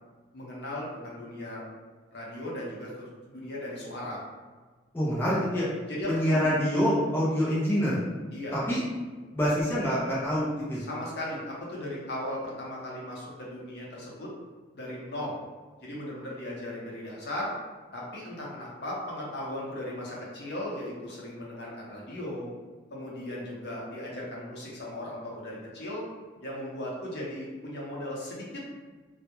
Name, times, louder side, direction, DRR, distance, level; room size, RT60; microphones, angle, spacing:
voice 1, 0.3-1.6 2.1-2.9 3.3-4.2 5.9-6.4 8.3-8.6 10.8-14.3 14.7-15.4 15.8-17.5 17.9-22.5 22.9-26.0 26.4-28.6, left 1 dB, 60° left, -5 dB, 0.7 m, -37 dB
voice 2, 4.9-5.7 6.1-8.0 8.5-8.8 9.3-10.8, equal, 10° left, -8 dB, 0.4 m, -26 dB
2.2 x 2.0 x 2.9 m, 1.4 s
head